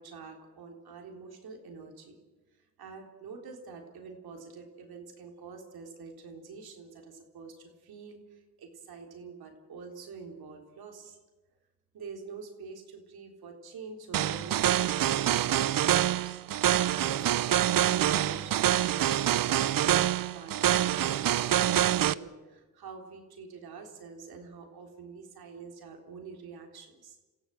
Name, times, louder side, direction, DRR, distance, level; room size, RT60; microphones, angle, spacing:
voice 1, 0.0-2.2 2.6-11.2 11.9-16.4 16.7-27.2, right 5 dB, 80° right, 2 dB, 3.8 m, -46 dB
sound 1, 14.1-22.1, right 12 dB, 65° right, 0.7 m, -26 dB
27.5 x 15.5 x 7.9 m, 1.2 s
cardioid pair, 85°, 37 cm